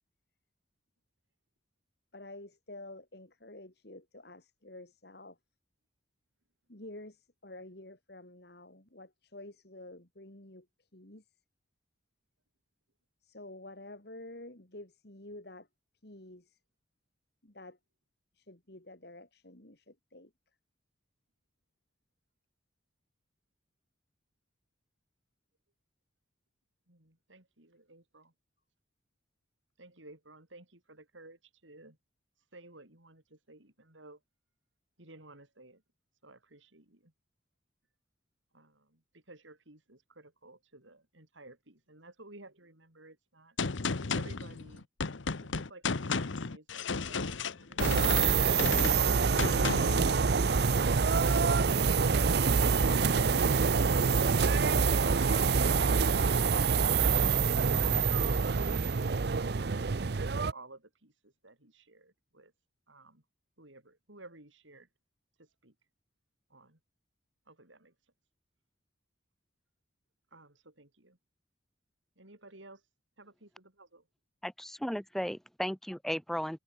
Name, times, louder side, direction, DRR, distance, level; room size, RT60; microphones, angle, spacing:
voice 1, 2.1-5.4 6.7-11.3 13.2-15.7 16.0-16.6 17.4-17.8 18.3-20.3, left 1 dB, 55° left, 2.9 m, -49 dB
voice 2, 26.9-28.3 29.8-32.0 32.5-34.2 35.0-35.8 36.2-37.1 38.5-43.6 44.1-44.9 45.4-49.0 59.0-62.5 62.9-63.2 63.6-64.9 65.4-65.7 66.5-66.8 67.5-68.1 70.3-71.2 72.2-72.9 73.2-74.1, right 2 dB, 80° right, 5.3 m, -55 dB
Gunshot gunfire, 43.6-50.1, left 4 dB, 80° left, 1.0 m, -34 dB
sound 1, 47.8-60.5, right 5 dB, 55° right, 0.6 m, -26 dB
voice 3, 74.4-76.6, equal, ahead, 0.4 m, -35 dB
head